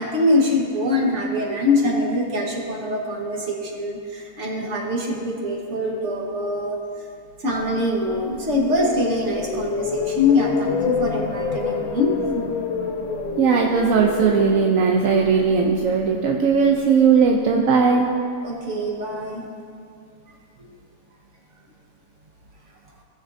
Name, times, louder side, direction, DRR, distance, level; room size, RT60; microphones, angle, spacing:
voice 1, 0.0-6.8 7.4-12.5 18.4-19.5 20.3-20.8, left 2 dB, 45° right, -1 dB, 1.5 m, -23 dB
sound 1, 7.6-17.8, left 5 dB, 60° left, 1.3 m, -29 dB
voice 2, 13.4-18.1, right 5 dB, 65° right, 0 dB, 0.9 m, -18 dB
16.5 x 6.4 x 2.6 m, 2.3 s
omnidirectional pair, 1.8 m